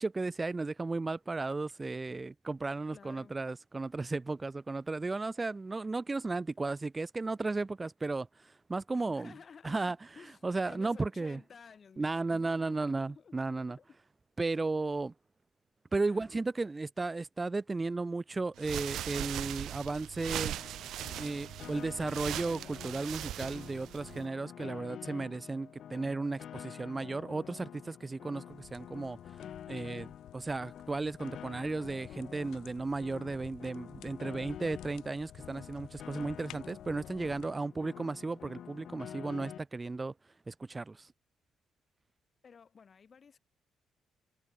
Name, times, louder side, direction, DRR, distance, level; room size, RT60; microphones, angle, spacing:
voice 1, 0.0-9.3 9.6-11.4 12.0-13.8 14.4-15.1 15.9-20.9 21.1-41.1, right 3 dB, 25° right, 0.4 m, -35 dB
voice 2, 2.9-3.3 8.9-9.8 10.1-10.4 10.6-13.8 16.1-16.4 42.4-43.4, left 6 dB, 45° left, 6.2 m, -54 dB
sound 1, 18.6-24.3, right 12 dB, 80° right, 0.6 m, -39 dB
Piano, 20.4-39.6, left 9 dB, 65° left, 1.5 m, -48 dB
sound 2, 28.5-37.5, left 14 dB, 85° left, 2.9 m, -54 dB
cardioid pair, 90°, 0 cm